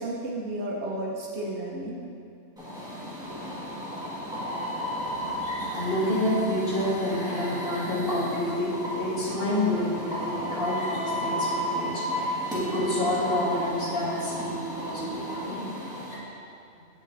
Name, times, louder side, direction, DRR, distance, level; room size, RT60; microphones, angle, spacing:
voice 1, 0.0-2.0 3.3-3.4, right 1 dB, 65° right, -3 dB, 1.2 m, -33 dB
sound 1, 2.6-16.1, equal, 5° right, 1.5 m, -33 dB
voice 2, 5.5-15.6, left 1 dB, 50° left, -7 dB, 1.7 m, -28 dB
7.7 x 7.0 x 2.6 m, 2.5 s
omnidirectional pair, 1.2 m